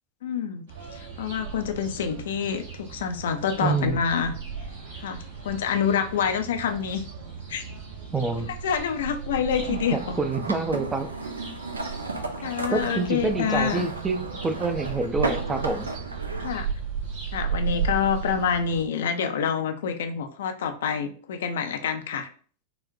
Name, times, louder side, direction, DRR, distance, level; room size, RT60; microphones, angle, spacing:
voice 1, 0.2-0.6 1.2-4.3 5.0-5.2 5.4-7.0 7.5-7.6 8.6-10.0 12.4-13.9 16.4-16.7 17.3-22.3, left 7 dB, 60° left, 8 dB, 0.3 m, -27 dB
sound 1, 0.7-18.8, right 6 dB, 55° right, 0.9 m, -36 dB
voice 2, 3.6-4.0 8.1-8.5 9.7-11.1 12.7-15.9, right 3 dB, 15° right, 7 dB, 0.4 m, -27 dB
sound 2, 9.5-16.5, right 3 dB, 75° right, 0.4 m, -34 dB
3.8 x 2.0 x 2.6 m, 0.43 s
figure-of-eight pair, 90°, 0 cm